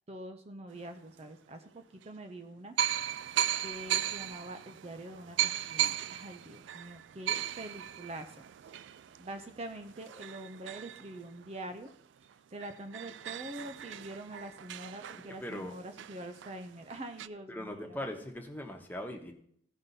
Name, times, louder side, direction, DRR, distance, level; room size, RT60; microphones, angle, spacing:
voice 1, 0.1-2.8 3.6-8.4 8.6-8.9 9.2-11.9 12.5-18.1, right 1 dB, 35° right, 7 dB, 0.6 m, -45 dB
sound 1, 1.1-1.2 2.0-2.1 2.8-11.9 12.3-12.4 12.6-17.3, right 11 dB, 90° right, 0.3 m, -37 dB
voice 2, 15.2-15.7 17.5-19.3, left 1 dB, 10° left, 2 dB, 1.2 m, -40 dB
16.0 x 5.4 x 4.1 m, 0.64 s
head